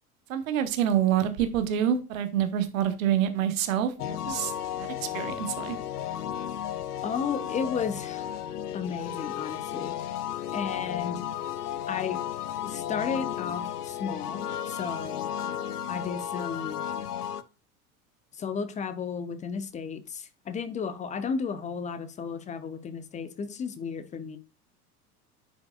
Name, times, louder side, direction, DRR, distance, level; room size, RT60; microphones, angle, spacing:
voice 1, 0.3-4.5 4.8-4.9 5.1-5.8, right 10 dB, 60° right, 1.2 m, -26 dB
sound 1, 4.0-17.4, left 10 dB, 75° left, 0.6 m, -34 dB
voice 2, 7.0-8.3 8.7-9.9 10.5-11.2 11.9-12.2 12.6-15.3 15.9-16.9 18.4-24.4, left 6 dB, 15° left, 0.7 m, -33 dB
10.0 x 5.1 x 2.3 m
figure-of-eight pair, 80°, 47 cm